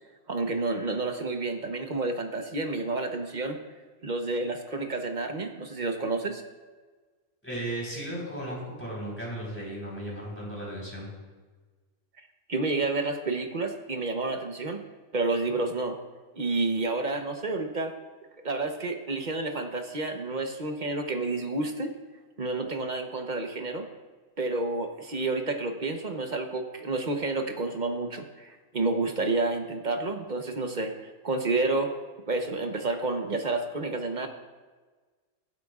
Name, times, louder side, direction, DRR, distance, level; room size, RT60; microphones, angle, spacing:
voice 1, 0.3-3.6 4.0-6.4 12.5-14.8 15.1-16.0 16.3-17.9 18.4-21.9 22.4-23.9 24.4-31.9 32.3-34.3, right 3 dB, 40° right, 5 dB, 1.0 m, -30 dB
voice 2, 7.4-11.1, right 1 dB, 10° left, -5 dB, 4.0 m, -35 dB
20.0 x 8.2 x 2.4 m, 1.4 s
omnidirectional pair, 1.4 m